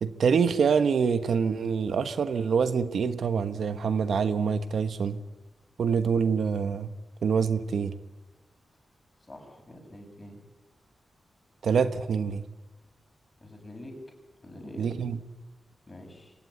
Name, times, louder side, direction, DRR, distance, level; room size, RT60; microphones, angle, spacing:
voice 1, 0.0-5.2 5.8-6.9 7.2-7.9 11.6-12.4 14.8-15.2, right 6 dB, 80° right, 11 dB, 1.3 m, -25 dB
voice 2, 9.3-10.4 13.4-13.9 14.4-14.9 15.9-16.3, left 1 dB, 25° left, 3 dB, 7.8 m, -45 dB
25.0 x 18.5 x 9.9 m, 1.1 s
wide cardioid pair, 120°, 0 cm